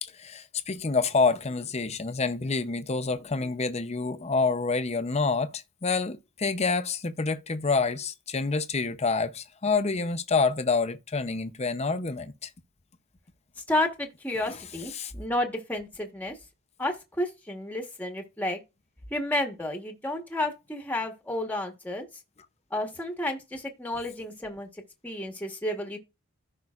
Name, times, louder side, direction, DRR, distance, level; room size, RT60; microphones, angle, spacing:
voice 1, 0.0-12.5 14.5-14.6 14.9-15.1, left 4 dB, 30° left, 0.6 m, -27 dB
voice 2, 13.7-16.4 16.8-18.6 19.1-22.1 22.7-24.7 25.0-26.0, left 1 dB, 5° left, 1.2 m, -31 dB
14.5 x 5.5 x 2.4 m
head